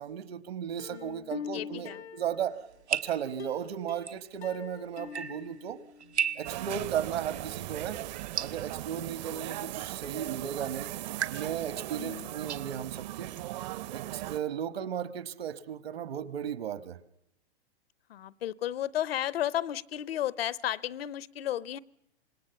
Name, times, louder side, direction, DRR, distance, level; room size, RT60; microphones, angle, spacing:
voice 1, 0.0-2.6 2.9-5.8 6.4-8.0 8.4-10.9 11.3-13.3 13.9-17.0, right 9 dB, 65° right, 1.6 m, -35 dB
Plucked string instrument, 0.8-2.8 3.4-6.2 6.5-6.6 7.0-7.1, left 5 dB, 85° left, 2.0 m, -43 dB
voice 2, 0.9-2.0 9.3-9.7 12.0-12.5 18.1-21.8, left 12 dB, 65° left, 0.8 m, -34 dB
sound 1, 2.5-14.2, right 7 dB, 90° right, 1.3 m, -40 dB
sound 2, 6.4-14.4, right 15 dB, 40° right, 0.8 m, -38 dB
26.0 x 20.5 x 7.0 m
hypercardioid pair, 125°, 32 cm